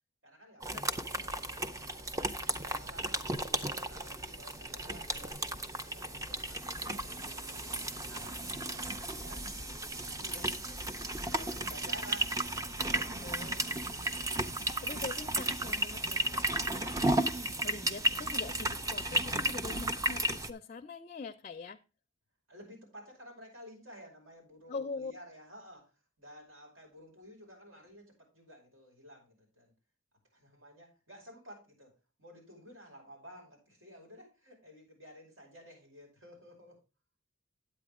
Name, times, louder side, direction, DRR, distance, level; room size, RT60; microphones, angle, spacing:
voice 1, 0.2-2.2 2.5-5.4 5.8-10.8 11.3-14.2 22.5-29.7 30.3-36.8, equal, 85° right, 0 dB, 5.5 m, -54 dB
sound 1, 0.6-20.5, right 1 dB, 15° right, 0.5 m, -34 dB
voice 2, 10.1-10.6 12.9-13.6 14.6-21.8 24.7-25.1, left 4 dB, 35° left, 7 dB, 0.4 m, -44 dB
9.4 x 8.6 x 3.6 m, 0.29 s
head